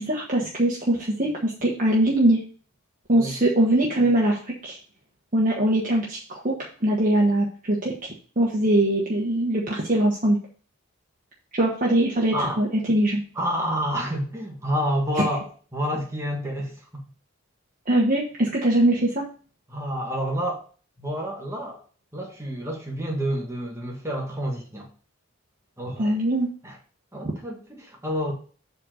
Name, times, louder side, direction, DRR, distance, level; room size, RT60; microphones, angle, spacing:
voice 1, 0.0-2.4 3.1-4.8 5.3-10.4 11.5-13.2 17.9-19.2 26.0-26.5, right 1 dB, 40° right, 1.2 m, -22 dB
voice 2, 12.3-12.6 13.3-17.0 19.7-20.6 21.0-21.8 22.1-24.9 25.8-26.2 26.6-26.8 27.1-28.3, equal, 15° right, 1.6 m, -29 dB
7.7 x 4.0 x 6.3 m
head